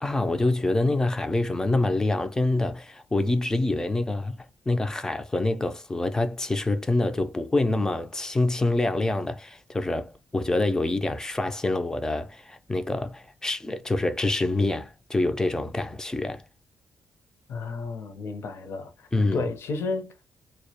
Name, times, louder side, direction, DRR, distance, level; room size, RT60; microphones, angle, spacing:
voice 1, 0.0-16.4 19.1-19.5, left 2 dB, 10° left, 0.3 m, -26 dB
voice 2, 17.5-18.9 19.3-20.3, left 3 dB, 60° left, 0.6 m, -32 dB
2.2 x 2.0 x 2.7 m
cardioid pair, 145°, 5 cm